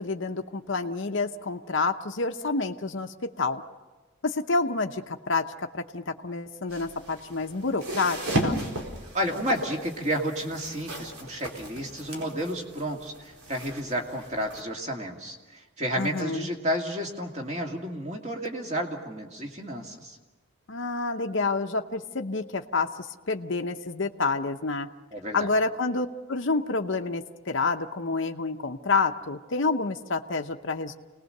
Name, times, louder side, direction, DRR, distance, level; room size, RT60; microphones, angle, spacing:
voice 1, 0.0-3.6 4.2-8.6 16.0-16.5 20.7-24.9 25.3-30.9, left 3 dB, 55° left, 5 dB, 0.8 m, -28 dB
sound 1, 6.7-14.6, right 1 dB, 80° right, 4.2 m, -35 dB
voice 2, 9.1-20.2 25.1-25.5, equal, 30° right, 1 dB, 2.4 m, -31 dB
27.5 x 19.5 x 6.6 m, 1.2 s
head